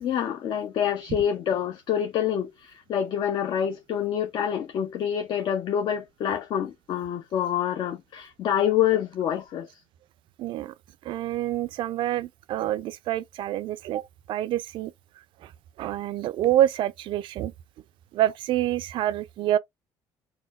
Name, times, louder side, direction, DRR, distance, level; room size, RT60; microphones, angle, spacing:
voice 1, 0.0-9.8, left 9 dB, 60° left, 0.6 m, -27 dB
voice 2, 10.4-10.7 11.0-14.9 15.4-15.5 15.8-17.5 18.1-19.6, right 13 dB, 65° right, 0.4 m, -27 dB
4.1 x 2.2 x 2.4 m
cardioid pair, 95°, 9 cm